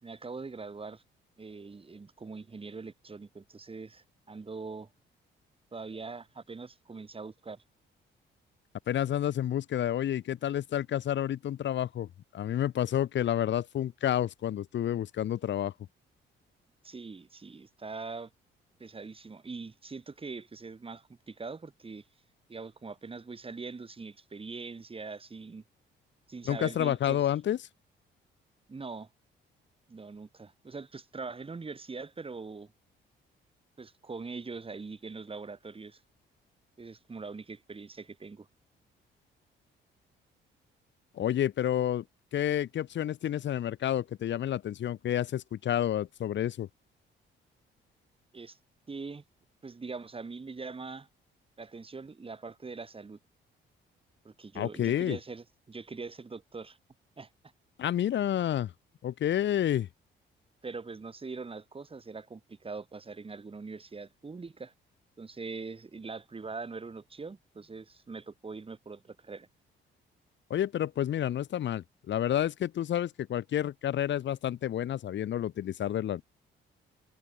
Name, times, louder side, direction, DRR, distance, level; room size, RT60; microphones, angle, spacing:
voice 1, 0.0-1.0 1.4-4.9 5.7-7.6 16.8-18.3 18.8-22.0 22.5-25.6 26.3-27.3 28.7-29.1 29.9-32.7 33.8-36.0 36.8-38.5 48.3-48.6 48.9-49.2 49.6-51.1 51.6-53.2 54.2-56.8 57.2-57.3 60.6-64.7 65.2-69.5, right 4 dB, 30° right, 4.6 m, -42 dB
voice 2, 8.9-15.7 26.5-27.6 41.1-42.0 42.3-46.7 54.6-55.2 57.8-58.7 59.0-59.9 70.5-76.2, left 11 dB, 65° left, 2.0 m, -30 dB
cardioid pair, 90°, 20 cm